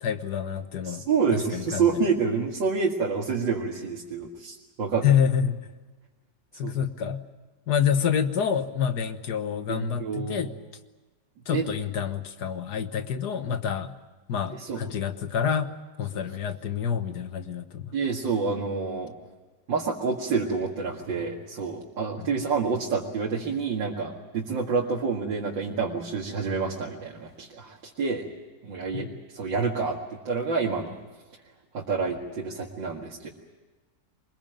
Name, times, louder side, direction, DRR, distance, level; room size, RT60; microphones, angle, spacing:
voice 1, 0.0-1.1 1.5-2.0 5.0-5.6 6.6-7.2 7.7-10.5 11.5-14.0 14.3-15.7 16.0-17.9 22.2-22.3 28.9-29.1, left 8 dB, 60° left, 9 dB, 1.8 m, -27 dB
voice 2, 0.8-5.1 6.6-6.8 9.7-10.5 11.5-11.6 14.5-14.9 17.9-19.1 19.7-28.3 28.6-30.0 30.2-30.9 31.7-33.3, right 5 dB, 80° right, -2 dB, 2.7 m, -28 dB
23.5 x 21.5 x 9.1 m, 1.3 s
omnidirectional pair, 2.0 m